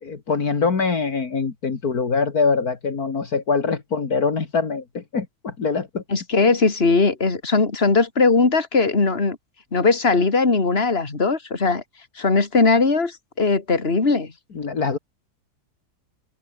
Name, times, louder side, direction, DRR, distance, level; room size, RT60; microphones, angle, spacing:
voice 1, 0.0-6.0 14.5-15.0, left 4 dB, 65° left, 2.7 m, -23 dB
voice 2, 6.1-9.4 9.7-11.8 12.2-14.3, left 4 dB, 35° left, 3.0 m, -19 dB
omnidirectional pair, 1.7 m